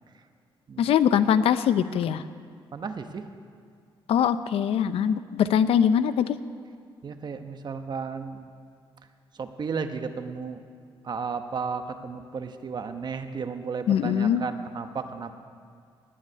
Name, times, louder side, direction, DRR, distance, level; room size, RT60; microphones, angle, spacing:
voice 1, 0.8-2.2 4.1-6.4 13.9-14.4, left 8 dB, 85° left, 13 dB, 0.6 m, -22 dB
voice 2, 2.7-3.2 7.0-8.5 9.4-10.6 11.0-15.3, right 5 dB, 50° right, 8 dB, 1.1 m, -34 dB
18.0 x 6.4 x 9.8 m, 2.2 s
cardioid pair, 100°, 10 cm